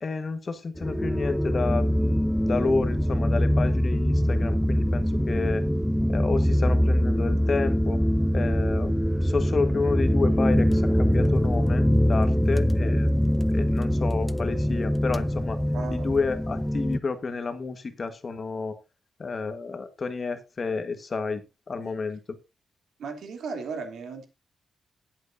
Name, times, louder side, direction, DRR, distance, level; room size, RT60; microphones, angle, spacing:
voice 1, 0.0-5.7 6.1-8.0 8.3-8.9 9.2-13.2 13.5-15.6 15.9-18.8 19.2-21.4 21.7-22.4, left 4 dB, 35° left, 9 dB, 1.4 m, -30 dB
sound 1, 0.8-17.0, equal, 5° left, 0.4 m, -23 dB
voice 2, 15.7-16.1 21.8-22.0 23.0-24.3, right 5 dB, 85° right, 5 dB, 2.8 m, -36 dB
19.5 x 8.1 x 2.6 m, 0.26 s
wide cardioid pair, 130°, 0 cm